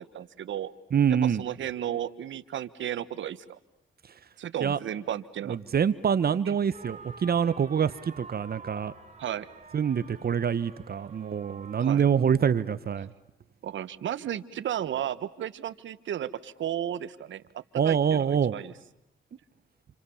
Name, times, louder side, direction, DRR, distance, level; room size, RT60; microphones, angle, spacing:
voice 1, 0.0-0.7 1.1-3.6 4.4-5.6 6.4-6.5 9.2-9.5 11.8-12.0 13.6-17.4 17.8-18.7, right 11 dB, 80° right, 14 dB, 1.3 m, -34 dB
voice 2, 0.9-1.4 4.6-4.8 5.5-8.9 9.7-13.1 17.8-18.5, right 7 dB, 55° right, 15 dB, 1.1 m, -25 dB
sound 1, 6.7-12.0, right 3 dB, 35° right, 3.5 m, -48 dB
28.5 x 28.5 x 7.2 m, 0.83 s
cardioid pair, 70°, 19 cm